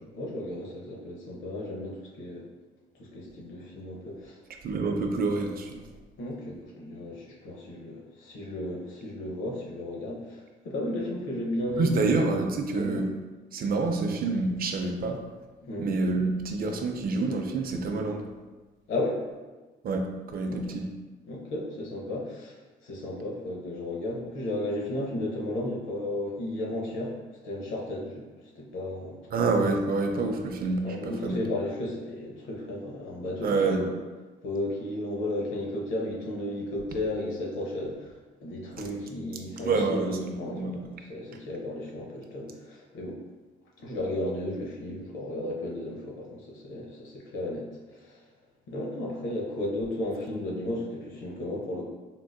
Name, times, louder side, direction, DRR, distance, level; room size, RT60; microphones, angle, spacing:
voice 1, 0.1-2.5 3.0-4.4 6.2-12.2 12.7-13.0 15.6-15.9 18.9-19.2 20.5-20.6 21.3-22.5 22.8-27.1 27.4-28.2 28.6-29.2 30.8-33.9 34.4-38.1 38.4-43.2 43.8-48.2 48.7-51.8, left 1 dB, 85° left, -2 dB, 0.8 m, -34 dB
voice 2, 4.6-5.8 11.8-13.1 13.5-15.2 15.8-18.3 19.8-20.9 29.3-31.4 33.4-33.9 39.6-41.0, right 3 dB, 50° right, 4 dB, 0.4 m, -27 dB
3.7 x 2.5 x 2.2 m, 1.2 s
cardioid pair, 90°, 20 cm